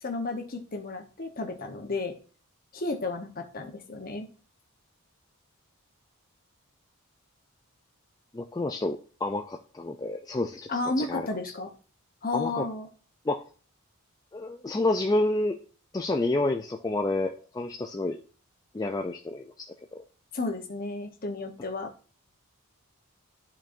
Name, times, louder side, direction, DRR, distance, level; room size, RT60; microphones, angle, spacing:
voice 1, 0.0-2.1 2.7-4.3 10.7-11.7 12.2-12.9 20.3-21.9, left 3 dB, 40° left, 4 dB, 1.0 m, -32 dB
voice 2, 8.3-11.5 12.3-12.7 13.3-13.4 14.3-15.6 15.9-18.2 18.7-20.0, left 2 dB, 15° left, 3 dB, 0.3 m, -29 dB
12.5 x 4.5 x 2.6 m, 0.40 s
head